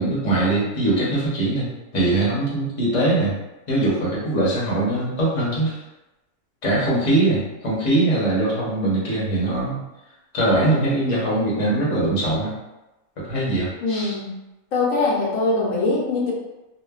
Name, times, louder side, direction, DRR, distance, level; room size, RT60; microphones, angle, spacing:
voice 1, 0.0-3.3 3.7-5.8 6.6-9.8 10.3-12.5 13.2-14.1, right 2 dB, 30° left, -6 dB, 0.7 m, -22 dB
voice 2, 13.8-14.4 14.7-16.3, left 3 dB, 75° left, -3 dB, 1.0 m, -22 dB
3.0 x 2.1 x 2.3 m, 1.0 s
omnidirectional pair, 1.4 m